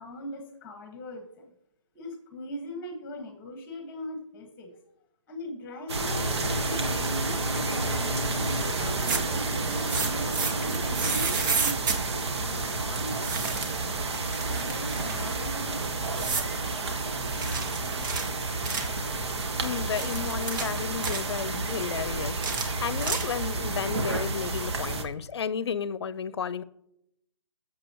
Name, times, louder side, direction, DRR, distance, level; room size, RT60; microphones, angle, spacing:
voice 1, 0.0-1.5 1.9-4.8 5.3-6.2 6.6-11.9 12.4-14.0 14.4-16.1, left 1 dB, 15° left, 1.8 m, -41 dB
sound 1, 5.9-25.0, right 3 dB, 55° right, 1.8 m, -31 dB
sound 2, 5.9-11.3, right 1 dB, 85° right, 5.4 m, -33 dB
sound 3, 8.9-9.4 9.8-12.0 13.2-13.8 14.1-15.3 16.1-16.5 17.4-19.0 19.7-21.3 22.3-23.5, right 5 dB, 40° right, 1.6 m, -31 dB
voice 2, 19.6-26.6, left 7 dB, 55° left, 0.7 m, -33 dB
21.0 x 7.5 x 3.1 m
hypercardioid pair, 160°, 16 cm